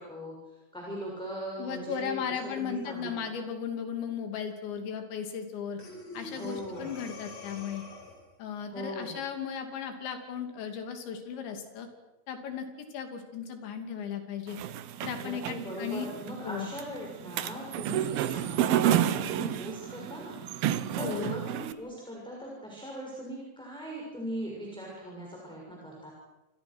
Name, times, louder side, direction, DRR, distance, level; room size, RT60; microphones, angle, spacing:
voice 1, 0.0-2.2 2.5-3.1 6.3-6.9 8.7-9.2 15.2-20.4 20.9-26.1, equal, ahead, -2 dB, 6.0 m, -39 dB
voice 2, 1.6-5.8 6.1-7.8 8.4-11.9 12.3-14.6 15.0-16.1 16.4-16.7 21.0-21.3, left 7 dB, 65° left, 6 dB, 4.9 m, -36 dB
Breathing, 5.8-8.3, left 2 dB, 30° left, 5.8 m, -45 dB
sound 1, 14.5-21.7, right 11 dB, 80° right, 2.2 m, -31 dB
29.5 x 26.0 x 6.3 m, 1.0 s
omnidirectional pair, 5.9 m